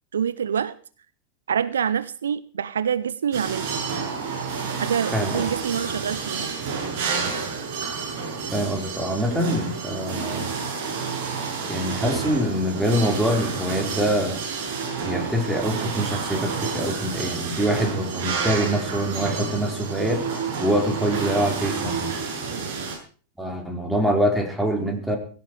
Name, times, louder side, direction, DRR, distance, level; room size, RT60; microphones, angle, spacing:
voice 1, 0.1-0.7 1.5-3.8 4.8-6.5 22.6-23.0, right 8 dB, 65° right, 17 dB, 0.7 m, -26 dB
sound 1, 3.3-23.0, right 5 dB, 50° right, 7.4 m, -29 dB
voice 2, 8.5-10.5 11.7-14.4 15.0-20.2 20.6-22.1 23.4-25.2, equal, 5° right, 2 dB, 4.5 m, -24 dB
17.5 x 16.5 x 4.8 m, 0.41 s
figure-of-eight pair, 90°, 0 cm